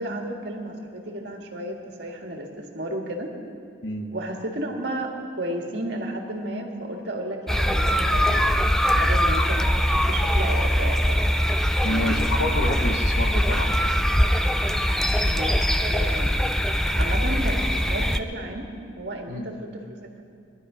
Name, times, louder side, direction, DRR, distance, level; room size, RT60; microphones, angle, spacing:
voice 1, 0.0-3.3 4.1-8.4 9.0-11.2 11.9-12.2 15.3-16.3 17.0-18.7 19.0-20.2, right 1 dB, 65° right, 1 dB, 1.9 m, -33 dB
voice 2, 3.8-4.1 11.8-13.8 19.3-19.5, left 1 dB, 75° left, 4 dB, 1.5 m, -28 dB
sound 1, 7.5-18.2, equal, 5° left, 0.4 m, -22 dB
21.5 x 11.5 x 5.1 m, 2.5 s
head